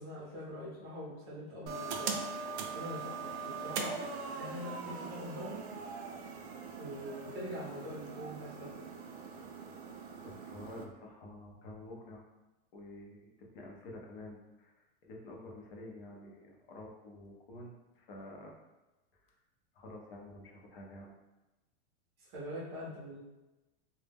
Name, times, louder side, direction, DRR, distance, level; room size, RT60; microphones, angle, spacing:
voice 1, 0.0-2.1 2.7-4.0 4.3-5.7 6.8-8.9 22.2-23.2, equal, 25° right, -6 dB, 0.4 m, -43 dB
sound 1, 1.7-10.8, right 5 dB, 85° right, 0.5 m, -41 dB
voice 2, 10.2-12.2 12.7-14.7 15.0-18.5 19.7-21.1, left 1 dB, 60° left, -1 dB, 0.6 m, -49 dB
2.1 x 2.0 x 3.3 m, 1.1 s
supercardioid pair, 175°, 32 cm